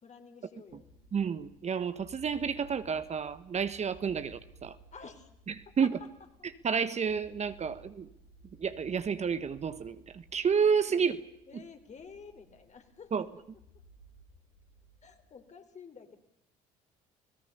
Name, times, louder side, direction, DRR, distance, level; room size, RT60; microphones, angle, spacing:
voice 1, 0.0-0.9 4.9-5.3 5.8-5.9 10.9-11.0 11.5-13.1 15.0-16.2, left 5 dB, 40° left, 7 dB, 3.9 m, -50 dB
sound 1, 0.7-15.4, equal, 80° left, 6.3 m, -58 dB
voice 2, 1.1-4.8 5.8-5.9 6.6-8.1 8.6-11.2 11.5-11.6 13.1-13.3, right 6 dB, 40° right, 12 dB, 1.3 m, -30 dB
30.0 x 17.5 x 6.9 m, 0.81 s
hypercardioid pair, 65°, 18 cm